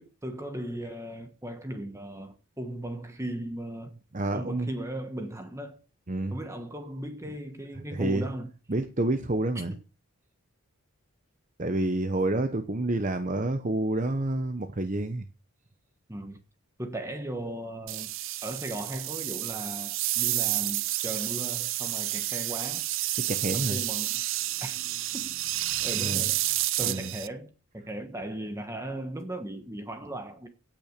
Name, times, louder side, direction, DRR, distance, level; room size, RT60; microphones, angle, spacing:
voice 1, 0.0-4.0 4.3-5.8 6.3-8.5 9.5-9.6 12.4-12.5 16.1-16.4 16.8-18.1 18.4-22.8 23.5-24.2 24.6-24.8 25.1-25.3 25.8-26.4 26.8-30.5, right 1 dB, 15° right, 1.2 m, -37 dB
voice 2, 4.1-4.7 6.1-6.4 7.9-8.3 8.7-9.7 11.6-15.3 23.2-23.8 25.8-26.2 26.8-27.1, right 2 dB, 35° right, 0.9 m, -28 dB
sound 1, 17.9-27.3, right 16 dB, 60° right, 0.5 m, -30 dB
17.0 x 6.2 x 6.7 m
head